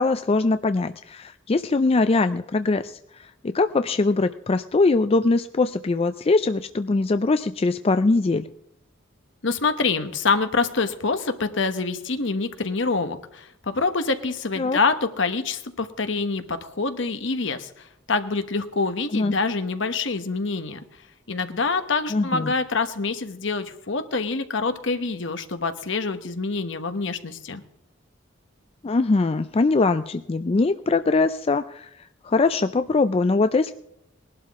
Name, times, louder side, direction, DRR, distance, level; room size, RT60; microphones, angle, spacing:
voice 1, 0.0-8.5 14.6-14.8 19.1-19.3 22.1-22.5 28.8-33.7, left 3 dB, 30° left, 10 dB, 0.4 m, -22 dB
voice 2, 9.4-20.8 21.3-27.6, left 4 dB, 65° left, 9 dB, 1.2 m, -26 dB
20.0 x 12.0 x 3.6 m, 0.77 s
head